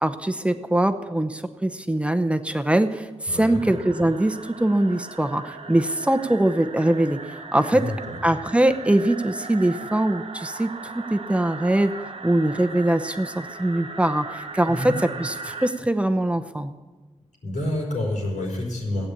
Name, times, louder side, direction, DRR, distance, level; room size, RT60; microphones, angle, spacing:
voice 1, 0.0-7.9 8.2-16.7, right 1 dB, 10° right, 9 dB, 0.7 m, -22 dB
voice 2, 3.3-3.6 7.7-8.2 14.7-14.9 17.4-19.1, left 1 dB, 85° left, -1 dB, 4.3 m, -28 dB
sound 1, 3.6-15.7, right 4 dB, 50° right, 1.1 m, -38 dB
15.5 x 8.8 x 8.4 m, 1.3 s
wide cardioid pair, 125°, 12 cm